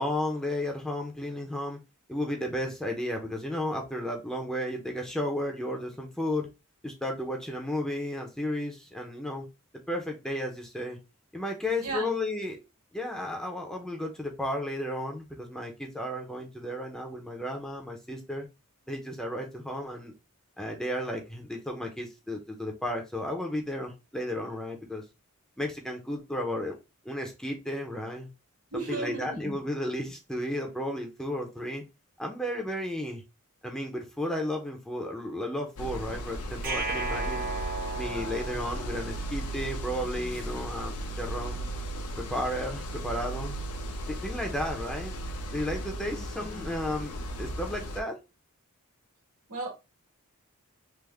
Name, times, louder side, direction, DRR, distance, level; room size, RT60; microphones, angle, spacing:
voice 1, 0.0-1.8 2.1-6.5 6.8-9.5 9.9-11.0 11.3-12.6 12.9-18.5 18.9-20.1 20.6-25.0 25.6-26.7 27.0-28.3 28.7-31.8 32.2-33.2 33.6-37.5 37.9-41.7 42.2-43.6 44.1-45.1 45.5-48.2, left 1 dB, 5° left, 0.5 m, -33 dB
voice 2, 11.8-12.2 28.7-29.6 46.2-46.6 49.5-49.7, right 2 dB, 80° right, 1.7 m, -35 dB
sound 1, 35.8-48.0, right 1 dB, 80° left, 0.6 m, -36 dB
sound 2, 36.6-39.7, right 2 dB, 40° right, 0.6 m, -35 dB
3.4 x 2.0 x 3.1 m
head